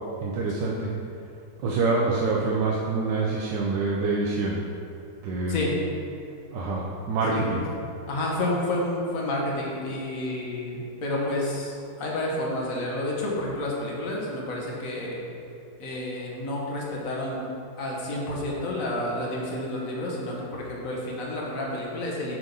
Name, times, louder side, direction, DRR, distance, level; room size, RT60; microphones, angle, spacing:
voice 1, 0.2-0.9 1.6-4.6 5.2-5.7 6.5-7.6, right 3 dB, 80° right, -3 dB, 1.4 m, -26 dB
voice 2, 7.3-15.2 15.8-17.4 17.8-22.4, left 1 dB, 50° left, -3 dB, 1.6 m, -30 dB
8.8 x 3.8 x 5.4 m, 2.6 s
omnidirectional pair, 1.9 m